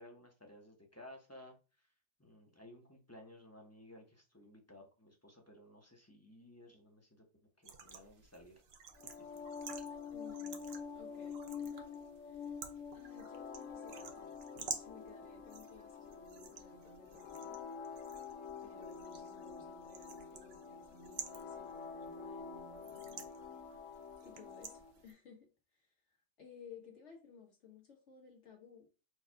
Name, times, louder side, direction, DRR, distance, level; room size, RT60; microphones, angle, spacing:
voice 1, 0.0-1.9 2.2-7.2 7.6-8.6 9.0-9.3, left 1 dB, 15° left, 1 dB, 0.9 m, -57 dB
sound 1, 7.6-25.1, right 6 dB, 60° right, 0.9 m, -52 dB
sound 2, 9.0-24.9, left 6 dB, 85° left, 1.0 m, -47 dB
voice 2, 10.1-10.6 10.9-12.6 12.9-17.6 18.6-23.3 23.6-23.9 24.2-28.9, left 4 dB, 70° left, 0 dB, 1.7 m, -58 dB
4.6 x 2.4 x 4.5 m, 0.32 s
omnidirectional pair, 1.3 m